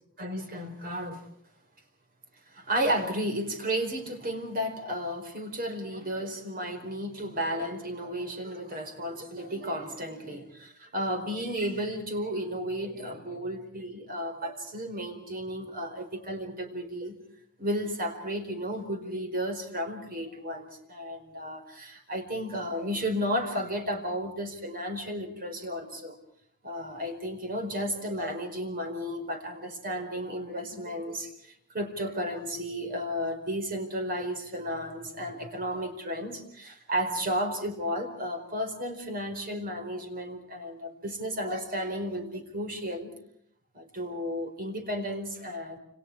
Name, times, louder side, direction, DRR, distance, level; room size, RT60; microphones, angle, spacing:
voice 1, 0.2-1.2 2.5-17.2 17.6-26.2 26.6-43.1 43.7-45.8, equal, 40° right, 5 dB, 4.8 m, -33 dB
29.5 x 28.5 x 4.8 m, 0.66 s
head